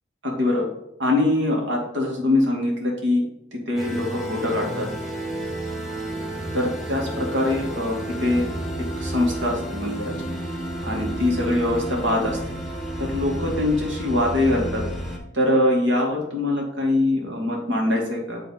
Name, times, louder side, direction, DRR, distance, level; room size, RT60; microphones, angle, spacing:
voice 1, 0.2-0.6 1.0-3.2 3.7-4.9 6.5-8.4 9.0-10.1 10.8-12.6 13.1-14.8 15.3-18.4, left 1 dB, 85° right, -1 dB, 2.0 m, -23 dB
sound 1, 3.8-15.2, right 1 dB, ahead, 1.0 m, -31 dB
8.5 x 3.3 x 4.2 m, 0.83 s
head